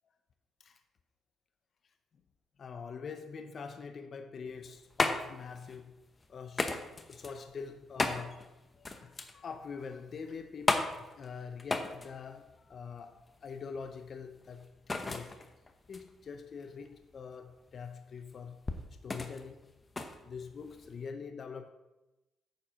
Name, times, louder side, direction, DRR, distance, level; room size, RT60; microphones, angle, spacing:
voice 1, 2.6-6.8 7.1-14.7 15.0-15.4 15.9-18.7 19.0-19.7 20.2-21.7, left 5 dB, 50° left, 7 dB, 0.6 m, -44 dB
sound 1, 4.5-21.0, left 3 dB, 30° left, 0.9 m, -37 dB
9.2 x 4.2 x 6.2 m, 1.0 s
cardioid pair, 90°, 0 cm